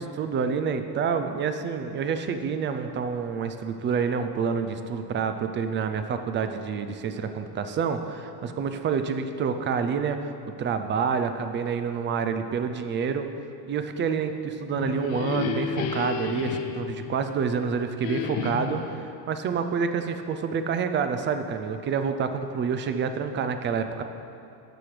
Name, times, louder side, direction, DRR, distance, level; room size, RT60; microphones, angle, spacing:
voice 1, 0.0-10.3 10.6-13.3 13.7-24.0, right 6 dB, 25° right, 8 dB, 0.4 m, -28 dB
sound 1, 14.5-17.6 18.0-19.0, left 6 dB, 75° left, 1.0 m, -32 dB
14.0 x 8.7 x 3.2 m, 2.7 s
cardioid pair, 150°, 47 cm